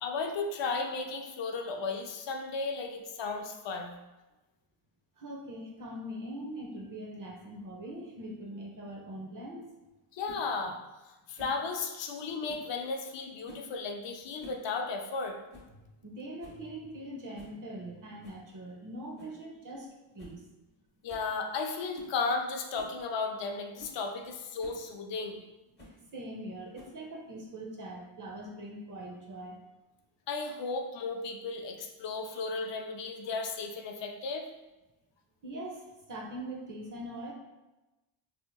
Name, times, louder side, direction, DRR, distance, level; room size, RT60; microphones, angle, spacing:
voice 1, 0.0-4.0 10.1-10.8 11.3-15.4 21.0-25.4 30.3-34.4, left 4 dB, 70° left, 4 dB, 0.6 m, -34 dB
voice 2, 5.2-9.7 15.7-19.9 20.1-20.4 25.9-29.6 35.4-37.3, right 1 dB, 45° right, 0 dB, 0.7 m, -42 dB
sound 1, 10.2-10.4 11.4-11.6 12.5-12.7 13.4-13.7 14.2-14.7 14.9-15.0 15.5-15.7 16.1-16.2 16.4-16.7 17.4-17.6 18.2-18.4 19.2-19.4 19.8-19.9 20.2-20.4 20.7-20.8 21.1-21.3 21.9-22.2 22.7-23.0 23.5-23.6 23.8-24.0 24.6-24.8 25.8-26.0 26.7-27.1, left 1 dB, 20° left, 1.0 m, -50 dB
4.2 x 2.7 x 2.3 m, 1.1 s
cardioid pair, 120°, 46 cm